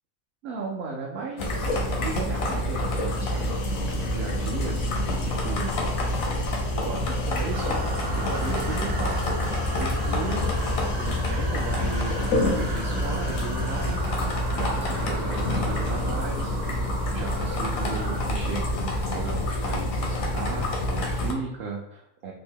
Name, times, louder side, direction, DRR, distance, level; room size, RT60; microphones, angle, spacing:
voice 1, 0.4-3.5 3.9-5.7 6.8-7.8 8.1-10.5 11.0-14.3 14.5-16.6 17.1-22.3, right 4 dB, 65° right, -2 dB, 0.7 m, -36 dB
sound 1, 1.4-21.3, left 1 dB, 85° left, 1.1 m, -27 dB
sound 2, 3.1-14.0, left 4 dB, 65° left, 0.6 m, -45 dB
sound 3, 7.5-18.2, right 3 dB, 80° right, 1.0 m, -36 dB
3.5 x 2.1 x 3.5 m, 0.82 s
omnidirectional pair, 1.4 m